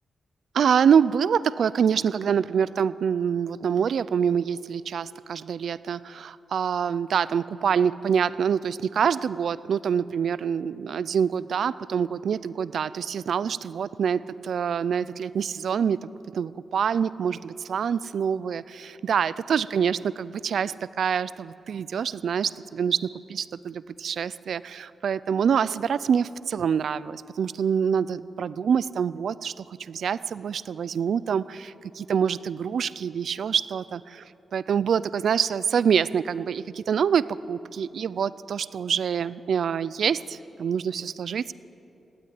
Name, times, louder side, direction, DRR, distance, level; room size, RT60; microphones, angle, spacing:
voice 1, 0.5-16.0 16.3-34.2 34.5-41.5, right 7 dB, 65° right, 18 dB, 0.4 m, -26 dB
19.0 x 16.0 x 9.5 m, 2.9 s
wide cardioid pair, 170°, 0 cm